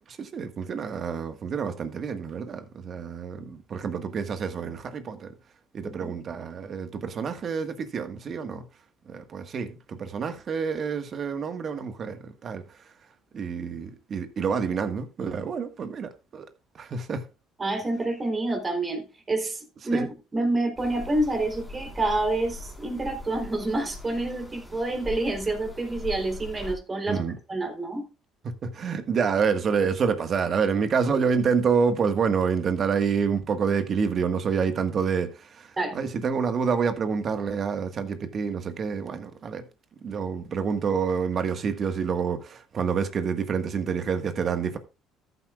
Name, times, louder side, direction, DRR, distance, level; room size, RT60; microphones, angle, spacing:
voice 1, 0.1-5.3 5.7-8.6 9.1-12.6 13.3-16.5 16.7-17.2 19.9-20.1 27.1-27.4 28.4-39.6 40.0-44.8, right 6 dB, 50° right, 1.6 m, -28 dB
voice 2, 5.8-6.2 17.6-27.2 27.5-28.0 35.8-35.9, right 2 dB, 25° right, 3.5 m, -28 dB
sound 1, 20.8-26.8, left 3 dB, ahead, 4.3 m, -41 dB
14.0 x 8.2 x 2.4 m
supercardioid pair, 80°, 0 cm